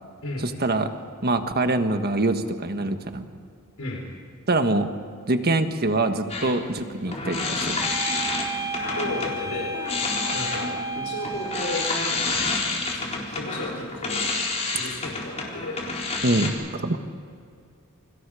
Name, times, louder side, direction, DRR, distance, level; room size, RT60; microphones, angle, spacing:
voice 1, 0.4-0.9 1.2-3.3 4.5-4.9 5.3-7.8 16.2-17.0, right 2 dB, 45° right, 7 dB, 1.6 m, -24 dB
sound 1, 6.3-9.4 9.7-16.5, left 3 dB, 30° left, 4.0 m, -29 dB
sound 2, 7.8-12.0, right 2 dB, 15° right, 1.3 m, -32 dB
voice 2, 8.9-10.0 10.3-11.9 12.9-14.3 14.7-15.8, left 2 dB, 75° left, 0 dB, 4.3 m, -34 dB
29.0 x 25.0 x 5.0 m, 2.3 s
head